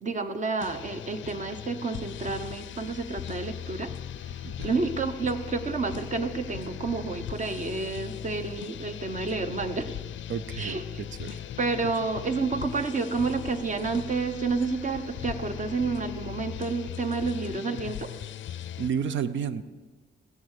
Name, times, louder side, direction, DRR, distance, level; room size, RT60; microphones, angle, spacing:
voice 1, 0.0-3.9 4.6-9.9 10.6-10.8 11.6-18.1, right 4 dB, 40° right, 8 dB, 0.9 m, -30 dB
sound 1, 0.6-18.9, left 10 dB, 80° left, 0.5 m, -39 dB
voice 2, 4.4-4.7 10.3-11.4 18.8-19.6, right 7 dB, 80° right, 13 dB, 0.7 m, -31 dB
15.5 x 11.0 x 6.6 m, 1.4 s
wide cardioid pair, 165°, 19 cm